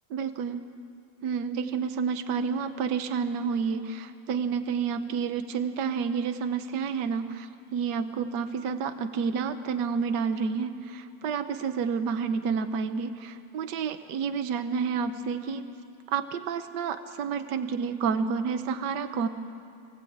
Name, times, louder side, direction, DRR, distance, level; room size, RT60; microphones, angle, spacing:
voice 1, 0.1-0.6 1.2-15.6 16.1-19.3, right 6 dB, 75° right, 8 dB, 1.5 m, -29 dB
23.0 x 18.0 x 8.6 m, 2.4 s
omnidirectional pair, 1.8 m